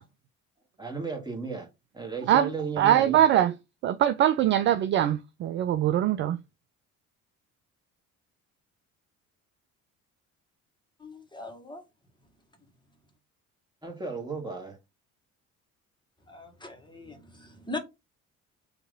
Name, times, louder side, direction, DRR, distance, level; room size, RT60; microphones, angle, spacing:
voice 1, 0.8-1.7 1.9-3.2 13.8-14.8, right 4 dB, 10° right, 1.8 m, -34 dB
voice 2, 2.8-3.5 3.8-6.4, right 11 dB, 30° right, 0.3 m, -22 dB
voice 3, 11.0-11.8 16.3-17.8, left 2 dB, 10° left, 1.7 m, -40 dB
4.9 x 2.9 x 3.7 m
figure-of-eight pair, 50°, 42 cm